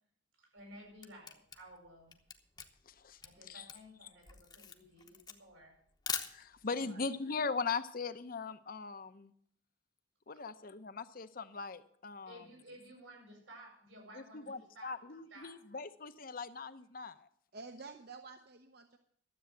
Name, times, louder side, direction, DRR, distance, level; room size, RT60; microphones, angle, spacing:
voice 1, 0.4-2.2 3.2-5.8 10.3-10.4 12.3-14.9 15.3-15.6, right 1 dB, 90° right, 0 dB, 7.9 m, -55 dB
Camera, 0.6-6.8, left 6 dB, 20° left, 0.9 m, -43 dB
voice 2, 2.9-3.2 3.4-3.6 6.3-9.3 10.3-12.4 14.1-17.3, left 4 dB, 45° left, 11 dB, 0.7 m, -40 dB
voice 3, 6.8-7.1 17.5-19.0, right 4 dB, 55° right, 6 dB, 0.8 m, -50 dB
12.5 x 7.9 x 7.8 m, 0.63 s
head